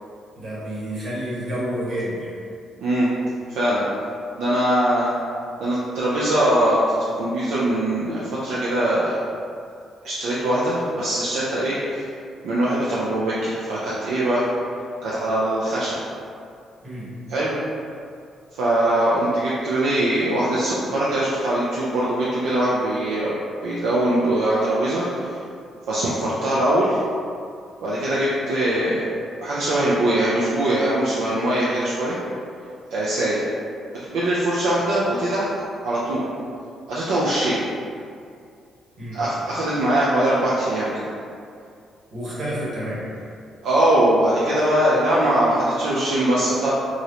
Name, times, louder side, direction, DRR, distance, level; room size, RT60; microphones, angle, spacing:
voice 1, 0.4-2.3 16.8-17.1 39.0-39.2 42.1-43.1, equal, 60° right, -8 dB, 1.2 m, -29 dB
voice 2, 2.8-3.1 3.5-3.8 4.4-5.1 5.6-9.2 10.0-12.1 12.4-14.5 15.0-15.9 17.3-17.6 18.5-23.4 23.6-25.4 25.9-27.0 27.8-29.0 29.4-32.2 32.9-33.4 34.1-35.5 35.8-36.2 36.9-37.6 39.1-40.9 43.6-46.7, right 1 dB, 85° right, -8 dB, 0.4 m, -21 dB
3.8 x 2.0 x 2.8 m, 2.4 s
cardioid pair, 90°, 0 cm